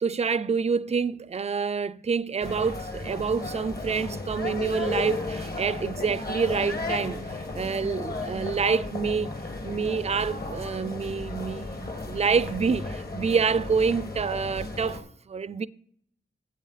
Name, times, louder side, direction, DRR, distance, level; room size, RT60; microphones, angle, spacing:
voice 1, 0.0-9.3 9.6-15.7, right 5 dB, 30° right, 0.4 m, -27 dB
sound 1, 2.4-15.0, left 2 dB, 50° left, 1.7 m, -34 dB
9.1 x 7.9 x 4.1 m
cardioid pair, 55°, 21 cm